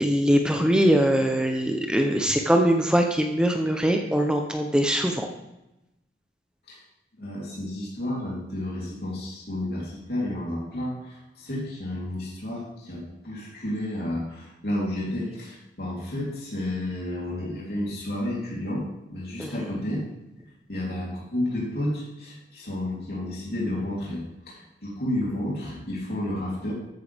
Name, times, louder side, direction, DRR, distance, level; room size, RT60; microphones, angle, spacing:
voice 1, 0.0-5.3 19.4-19.5, equal, 5° right, 3 dB, 0.7 m, -22 dB
voice 2, 7.2-20.0 20.7-26.7, left 1 dB, 60° left, -5 dB, 3.4 m, -31 dB
14.0 x 9.1 x 3.5 m, 0.92 s
head